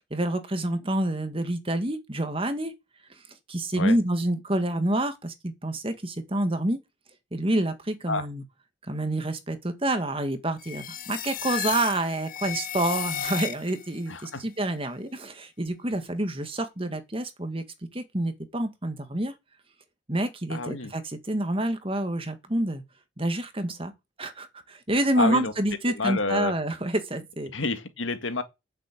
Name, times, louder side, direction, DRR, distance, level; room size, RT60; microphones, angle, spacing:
voice 1, 0.1-2.7 3.5-6.8 7.3-8.4 8.9-17.6 17.9-19.3 20.1-22.8 23.2-23.9 24.2-27.5, right 1 dB, 30° right, 1.9 m, -28 dB
sound 1, 10.6-14.0, left 10 dB, 45° left, 0.9 m, -34 dB
voice 2, 14.1-14.4 20.5-20.9 25.2-25.5 25.9-26.5 27.5-28.4, left 3 dB, 85° left, 1.8 m, -29 dB
9.0 x 7.4 x 8.5 m
head